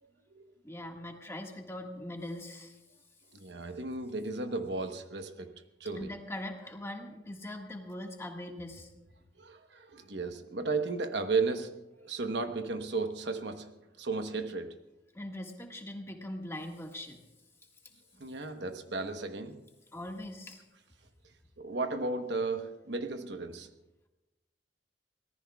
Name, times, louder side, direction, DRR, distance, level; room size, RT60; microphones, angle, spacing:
voice 1, 0.0-0.5 3.3-6.2 9.4-13.7 14.0-14.8 18.2-19.6 21.6-23.7, right 3 dB, 70° right, 7 dB, 1.1 m, -34 dB
voice 2, 0.6-2.8 5.9-8.9 9.8-10.0 15.1-17.2 18.1-18.2 19.9-20.6, left 1 dB, 15° left, 2 dB, 1.7 m, -41 dB
24.5 x 18.5 x 2.3 m, 1.0 s
head